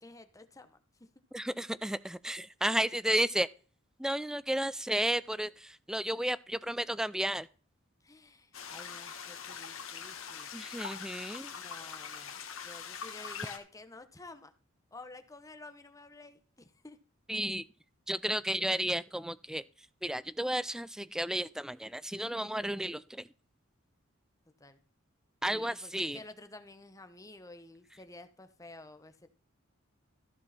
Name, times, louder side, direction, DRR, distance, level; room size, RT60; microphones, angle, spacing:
voice 1, 0.0-1.1 2.6-2.8 8.0-10.5 11.5-14.5 14.9-17.0 24.6-24.8 25.5-29.3, left 2 dB, 15° left, 0.9 m, -51 dB
voice 2, 1.3-3.5 4.0-7.5 10.5-11.5 17.3-17.7 18.1-23.3 25.4-26.2, right 1 dB, 5° right, 0.3 m, -33 dB
sound 1, 8.5-13.6, left 7 dB, 80° left, 1.5 m, -43 dB
14.5 x 6.4 x 4.2 m
head